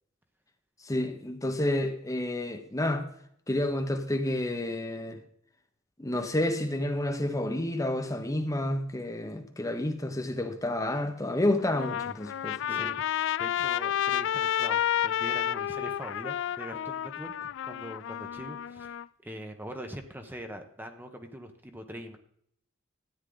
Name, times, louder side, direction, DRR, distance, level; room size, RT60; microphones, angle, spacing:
voice 1, 0.8-3.1 3.5-5.2 6.0-12.9, left 1 dB, 15° left, 1.0 m, -30 dB
Trumpet, 11.6-19.0, left 10 dB, 65° left, 0.3 m, -31 dB
voice 2, 12.7-13.0 13.4-22.2, equal, 10° right, 1.0 m, -42 dB
13.5 x 9.2 x 3.9 m
head